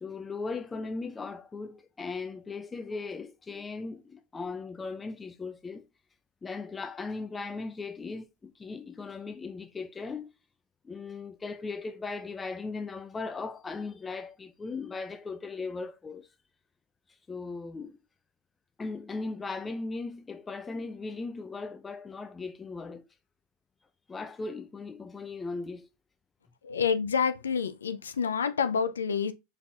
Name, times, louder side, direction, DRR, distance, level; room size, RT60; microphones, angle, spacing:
voice 1, 0.0-5.9 6.4-10.3 10.8-16.3 17.3-18.0 18.8-23.0 24.1-25.9, left 4 dB, 20° left, 0.5 m, -38 dB
voice 2, 26.6-29.3, left 6 dB, 85° left, 0.4 m, -28 dB
4.1 x 3.9 x 2.4 m
hypercardioid pair, 95°, 0 cm